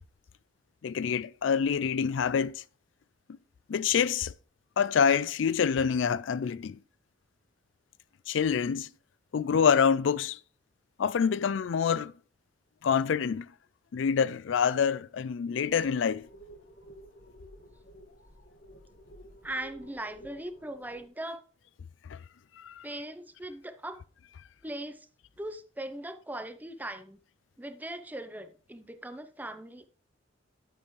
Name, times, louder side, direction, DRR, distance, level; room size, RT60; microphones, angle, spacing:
voice 1, 0.8-2.6 3.7-4.3 4.8-6.8 8.3-8.9 9.3-10.4 11.0-12.1 12.8-13.5 13.9-16.3 22.1-22.2 22.6-22.9, left 7 dB, 80° left, 0.4 m, -26 dB
sound 1, 15.5-21.1, right 1 dB, 60° left, 1.8 m, -53 dB
voice 2, 19.4-21.4 22.8-24.0 24.6-25.1 25.4-27.2 27.6-29.9, right 1 dB, 10° right, 0.7 m, -39 dB
9.8 x 8.9 x 3.2 m
head